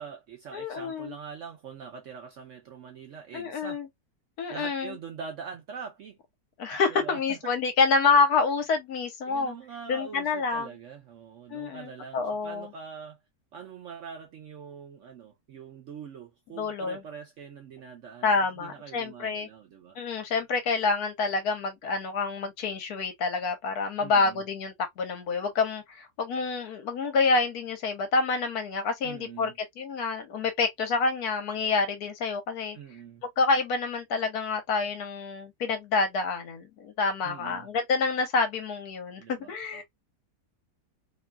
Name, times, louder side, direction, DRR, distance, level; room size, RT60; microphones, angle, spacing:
voice 1, 0.0-3.8 4.5-6.2 6.9-7.4 9.3-13.2 13.5-18.3 18.6-20.0 24.0-24.4 29.0-29.5 32.7-33.2 37.2-37.7 39.2-39.8, right 6 dB, 65° right, 0.8 m, -43 dB
voice 2, 0.5-1.1 3.3-3.9 4.4-5.0 6.6-9.5 9.9-10.7 11.5-12.7 16.6-17.0 18.2-19.5 20.0-29.5 29.8-32.8 33.2-39.8, left 4 dB, 70° left, 1.2 m, -27 dB
2.9 x 2.3 x 2.3 m
omnidirectional pair, 1.8 m